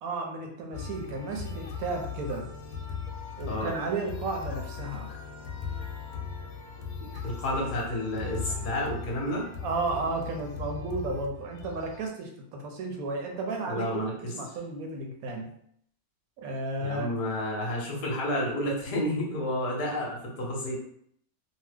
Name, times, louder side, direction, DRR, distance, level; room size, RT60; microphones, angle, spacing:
voice 1, 0.0-2.5 3.4-5.1 7.1-7.2 9.6-15.5 16.4-17.1, right 3 dB, 80° right, 2 dB, 1.0 m, -33 dB
sound 1, 0.7-12.1, left 5 dB, 75° left, 0.9 m, -38 dB
voice 2, 7.2-9.4 13.6-14.3 16.8-20.8, left 1 dB, 45° left, -2 dB, 0.8 m, -30 dB
2.8 x 2.1 x 3.3 m, 0.68 s
omnidirectional pair, 1.5 m